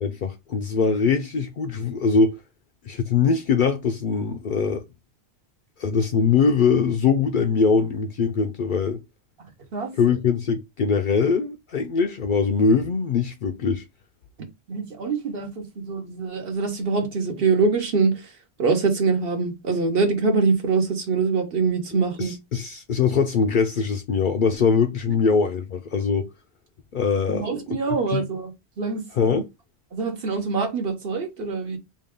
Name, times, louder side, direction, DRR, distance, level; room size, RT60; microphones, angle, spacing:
voice 1, 0.0-2.4 2.8-4.8 5.8-9.0 10.0-13.8 22.2-26.3 26.9-27.8 28.1-28.2 29.2-29.4, left 5 dB, 60° left, 0.6 m, -22 dB
voice 2, 14.7-18.3 18.6-22.3 27.3-28.5 28.8-29.4 29.9-31.8, right 4 dB, 60° right, 1.1 m, -24 dB
3.6 x 2.3 x 3.5 m
omnidirectional pair, 1.1 m